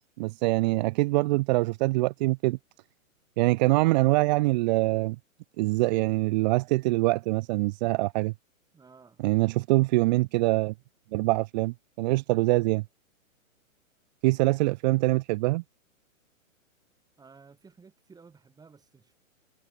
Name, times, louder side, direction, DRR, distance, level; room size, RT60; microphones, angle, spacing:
voice 1, 0.2-2.6 3.4-5.2 5.6-8.3 9.2-10.7 11.1-12.8 14.2-15.6, right 21 dB, 30° right, 1.0 m, -24 dB
voice 2, 8.7-9.2 17.2-19.2, right 5 dB, 10° right, 7.3 m, -54 dB
hypercardioid pair, 140°, 41 cm